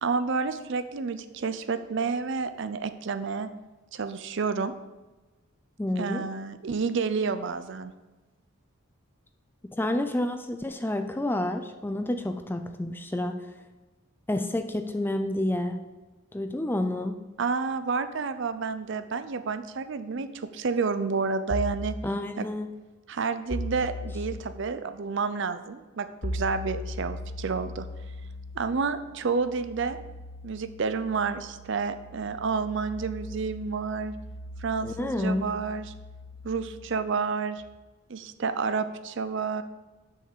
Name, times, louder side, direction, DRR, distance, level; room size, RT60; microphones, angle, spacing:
voice 1, 0.0-3.5 3.9-4.7 6.0-7.9 17.4-21.9 22.4-22.5 23.1-27.9 28.5-30.0 30.4-34.2 34.6-35.9 36.4-37.6 38.1-39.6, right 5 dB, 60° right, 11 dB, 0.5 m, -30 dB
voice 2, 5.8-6.3 9.8-13.5 14.3-15.8 16.3-17.2 22.0-22.7 34.8-35.5, left 1 dB, 10° left, 7 dB, 0.4 m, -29 dB
sound 1, 21.5-21.9 23.5-24.4 26.2-37.6, left 1 dB, 50° left, 0.8 m, -39 dB
6.5 x 5.6 x 6.7 m, 1.2 s
head